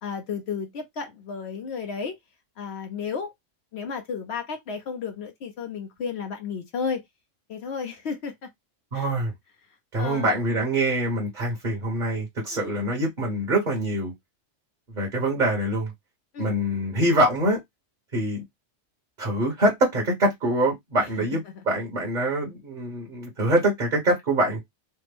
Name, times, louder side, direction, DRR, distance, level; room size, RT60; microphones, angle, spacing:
voice 1, 0.0-2.2 2.6-3.3 3.7-7.0 7.5-8.5 8.9-9.1 10.0-10.4 12.5-12.8 16.3-16.6 21.0-21.1 21.5-21.6, left 6 dB, 65° left, 0.9 m, -33 dB
voice 2, 8.9-9.3 9.9-14.1 14.9-15.9 16.4-17.6 18.1-18.4 19.2-24.6, right 1 dB, 40° right, 1.1 m, -24 dB
3.4 x 2.1 x 3.3 m
omnidirectional pair, 1.2 m